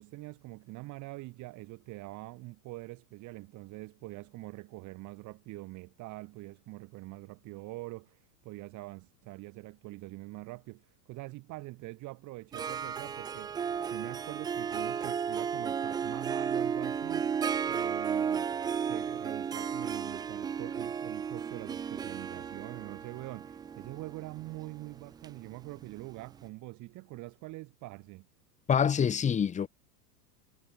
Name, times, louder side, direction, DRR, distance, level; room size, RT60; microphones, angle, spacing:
voice 1, 0.0-18.5 18.8-28.3, right 21 dB, 35° right, 7.8 m, -44 dB
Harp, 12.5-26.1, right 7 dB, 10° right, 0.6 m, -34 dB
voice 2, 28.7-29.7, left 7 dB, 15° left, 2.1 m, -26 dB
supercardioid pair, 155°, 48 cm